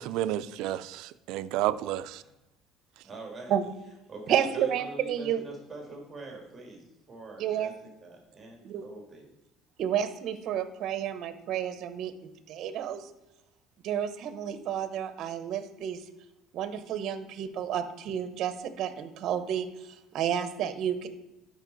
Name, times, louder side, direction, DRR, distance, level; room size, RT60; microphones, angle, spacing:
voice 1, 0.0-2.2, right 13 dB, 80° right, 0.4 m, -31 dB
voice 2, 3.0-3.6 4.1-9.3, right 3 dB, 25° right, 2.0 m, -44 dB
voice 3, 4.3-5.4 7.4-7.7 8.6-8.8 9.8-12.1 12.5-13.0 13.8-16.0 16.5-19.7 20.1-21.1, right 9 dB, 55° right, 0.9 m, -30 dB
12.5 x 5.3 x 4.0 m
cardioid pair, 140°, 0 cm